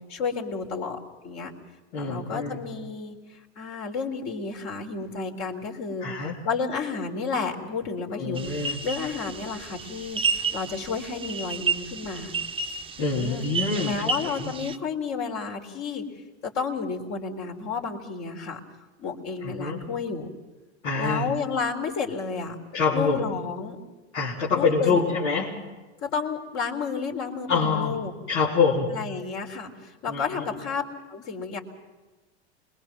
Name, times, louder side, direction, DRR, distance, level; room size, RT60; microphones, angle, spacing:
voice 1, 0.1-1.0 1.2-1.5 2.0-3.2 3.6-6.1 6.4-12.3 13.1-13.4 13.7-16.0 16.6-18.6 19.0-20.3 21.0-22.5 22.9-23.8 24.5-25.2 26.0-28.1 28.9-29.7 30.0-30.8 31.1-31.6, left 5 dB, 50° left, 3 dB, 4.1 m, -31 dB
voice 2, 1.9-2.7 6.0-6.4 8.1-8.8 13.0-14.1 14.4-14.5 19.4-19.8 20.8-21.3 22.7-23.3 24.1-25.6 27.5-28.0 28.3-29.0 30.1-30.5, left 4 dB, 85° left, -6 dB, 4.0 m, -26 dB
sound 1, 8.4-14.8, right 4 dB, 15° right, 0.9 m, -31 dB
27.0 x 22.0 x 6.1 m, 1.2 s
hypercardioid pair, 105°, 34 cm